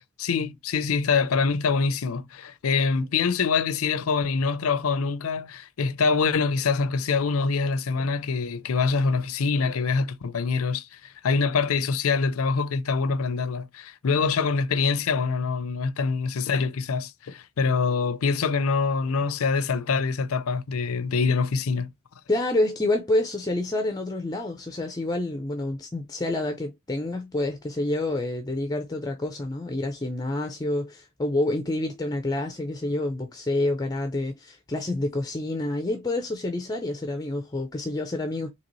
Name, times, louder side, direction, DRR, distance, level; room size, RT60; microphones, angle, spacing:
voice 1, 0.2-21.9, left 4 dB, 75° left, 0.5 m, -25 dB
voice 2, 22.3-38.5, left 2 dB, 15° left, 0.4 m, -28 dB
4.0 x 2.9 x 2.9 m
head